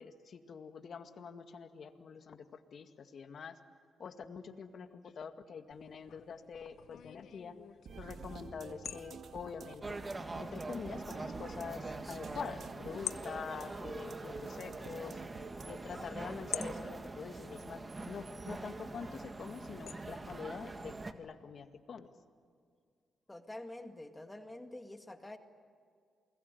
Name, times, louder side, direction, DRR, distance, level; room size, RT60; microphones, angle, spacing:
voice 1, 0.0-3.6 4.0-7.6 8.0-10.0 10.4-15.2 15.7-22.1, left 6 dB, 55° left, 7 dB, 2.0 m, -45 dB
sound 1, 5.7-20.3, left 9 dB, 70° left, 0.8 m, -50 dB
sound 2, 7.9-15.9, right 6 dB, 65° right, 1.9 m, -50 dB
sound 3, 9.8-21.1, right 2 dB, 25° right, 1.8 m, -44 dB
voice 2, 23.3-25.4, left 1 dB, 15° left, 6 dB, 2.0 m, -47 dB
28.5 x 21.5 x 9.5 m, 2.2 s
cardioid pair, 80°, 0 cm